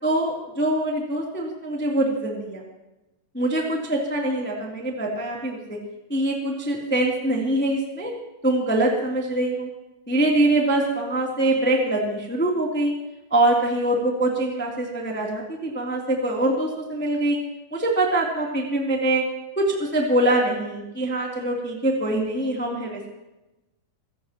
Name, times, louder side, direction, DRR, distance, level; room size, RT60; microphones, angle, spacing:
voice 1, 0.0-2.6 3.3-5.8 6.1-8.1 8.4-9.7 10.1-12.9 13.3-17.4 17.7-19.2 19.5-23.1, right 1 dB, 5° left, -2 dB, 1.8 m, -23 dB
26.0 x 16.5 x 3.0 m, 0.98 s
omnidirectional pair, 5.4 m